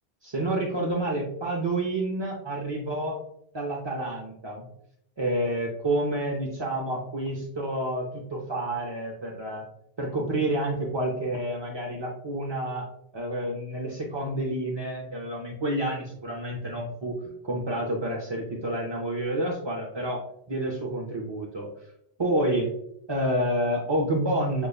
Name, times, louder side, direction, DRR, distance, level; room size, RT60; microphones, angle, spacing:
voice 1, 0.2-3.2 3.5-4.7 5.2-9.6 10.0-12.9 13.1-17.2 17.4-21.7 22.2-22.7 23.1-24.7, right 1 dB, 35° right, -2 dB, 0.4 m, -29 dB
6.4 x 2.2 x 2.3 m, 0.76 s
omnidirectional pair, 1.1 m